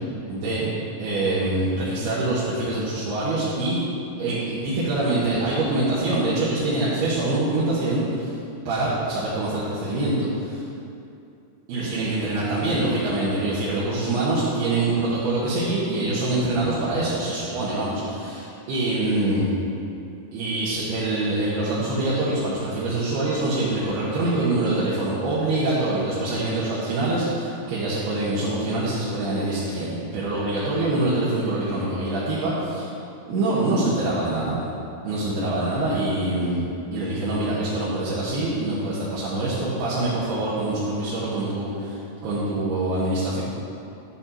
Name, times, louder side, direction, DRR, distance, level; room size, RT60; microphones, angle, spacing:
voice 1, 0.3-0.7 1.0-3.8 4.2-8.3 8.7-10.6 11.7-19.5 20.3-32.9 33.3-34.6 35.0-36.6 36.9-43.4, right 2 dB, 80° right, -9 dB, 3.4 m, -25 dB
12.0 x 7.0 x 4.5 m, 2.6 s
omnidirectional pair, 4.6 m